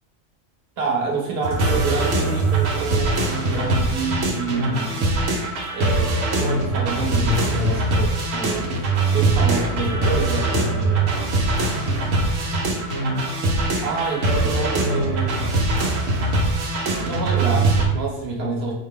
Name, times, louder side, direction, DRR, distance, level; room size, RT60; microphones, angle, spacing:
voice 1, 0.8-5.1 5.7-6.1 6.3-11.2 13.8-15.7 17.0-18.7, right 3 dB, 55° right, -2 dB, 1.2 m, -27 dB
sound 1, 1.4-17.9, right 2 dB, 90° right, 1.1 m, -22 dB
4.6 x 2.1 x 3.8 m, 0.91 s
omnidirectional pair, 1.3 m